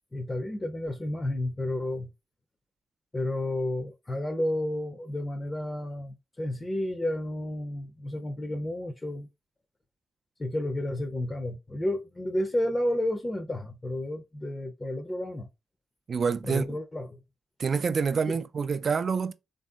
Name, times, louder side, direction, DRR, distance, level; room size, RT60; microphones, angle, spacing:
voice 1, 0.1-2.1 3.1-9.3 10.4-15.5 16.4-17.2 18.3-18.4, left 1 dB, 30° left, 0.6 m, -31 dB
voice 2, 16.1-16.8 17.6-19.3, right 5 dB, 55° right, 0.4 m, -27 dB
3.4 x 2.6 x 2.4 m
hypercardioid pair, 45°, 0 cm